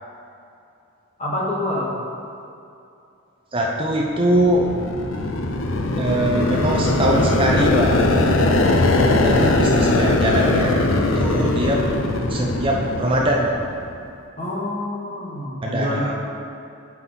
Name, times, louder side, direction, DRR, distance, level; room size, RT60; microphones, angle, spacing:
voice 1, 1.2-2.0 14.4-16.1, left 1 dB, 30° left, -4 dB, 1.2 m, -26 dB
voice 2, 3.5-4.7 6.0-8.0 9.2-10.9 11.2-11.8 12.3-13.6 15.6-16.1, right 1 dB, 25° right, -2 dB, 0.5 m, -22 dB
sound 1, 4.1-13.9, left 2 dB, 65° left, 0.6 m, -20 dB
7.5 x 5.7 x 3.9 m, 2.6 s
head